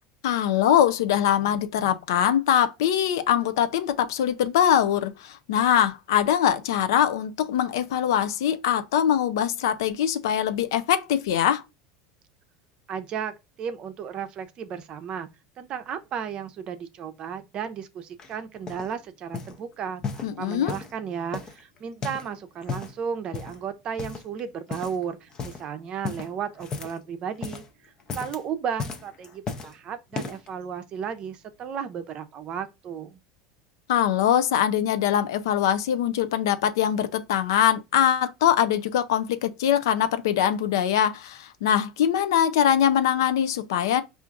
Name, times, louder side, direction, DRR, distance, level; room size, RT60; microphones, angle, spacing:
voice 1, 0.2-11.6 20.2-20.7 33.9-44.0, left 10 dB, 75° left, 0.4 m, -22 dB
voice 2, 12.9-15.3 15.6-33.2, right 7 dB, 45° right, 0.5 m, -34 dB
sound 1, 18.2-18.9 19.3-19.6 20.0-21.0 21.3-22.3 22.6-23.0 23.3-23.6 24.0-24.4 24.7-25.0 25.3-25.6 26.0-27.1 27.3-27.7 28.0-28.4 28.8-29.7 30.1-30.5 31.1-31.2, left 5 dB, 35° left, 0.6 m, -35 dB
4.5 x 2.5 x 2.4 m
hypercardioid pair, 85°, 2 cm